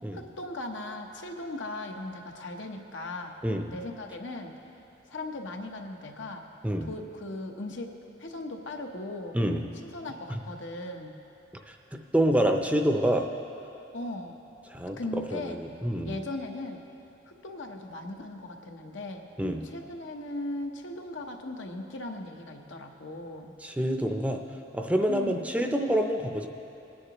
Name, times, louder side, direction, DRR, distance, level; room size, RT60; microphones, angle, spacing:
voice 1, 0.1-3.4 3.7-4.5 5.1-6.5 6.8-9.4 9.8-11.2 13.9-14.4 15.0-15.6 16.0-16.8 17.3-19.3 19.6-23.5 25.1-25.5, left 2 dB, 85° left, 3 dB, 1.0 m, -38 dB
voice 2, 3.4-3.7 6.6-6.9 9.3-9.6 10.3-10.4 11.7-11.8 12.1-13.3 14.7-15.0 15.3-16.1 19.4-19.6 23.6-24.4 24.7-26.5, right 1 dB, 10° right, 4 dB, 0.5 m, -27 dB
20.0 x 9.8 x 3.0 m, 2.8 s
head